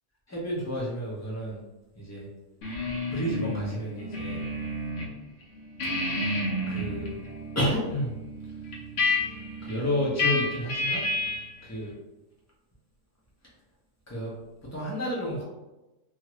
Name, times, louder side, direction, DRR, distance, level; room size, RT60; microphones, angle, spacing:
voice 1, 0.3-1.6 2.0-2.3 3.1-4.4 6.7-7.1 7.5-8.1 9.6-11.0 11.6-11.9 14.1-14.3 14.7-15.4, equal, 15° left, -5 dB, 0.5 m, -30 dB
sound 1, 2.6-5.1 5.4-11.6, left 2 dB, 65° left, 0.9 m, -31 dB
2.9 x 2.5 x 3.0 m, 1.0 s
omnidirectional pair, 1.5 m